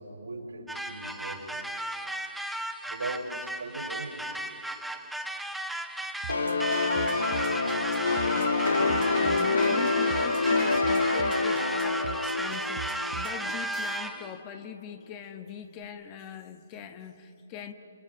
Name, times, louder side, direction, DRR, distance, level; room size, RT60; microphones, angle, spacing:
voice 1, 0.0-1.6 2.9-4.3, right 2 dB, 75° right, 3 dB, 5.5 m, -39 dB
sound 1, 0.7-14.4, right 1 dB, ahead, 1.0 m, -35 dB
sound 2, 6.2-14.0, right 10 dB, 45° right, 0.9 m, -41 dB
sound 3, 6.3-13.8, left 3 dB, 80° left, 1.8 m, -27 dB
voice 2, 8.0-17.7, left 8 dB, 30° left, 8 dB, 1.5 m, -42 dB
29.5 x 28.5 x 5.6 m, 2.7 s
figure-of-eight pair, 135°, 0 cm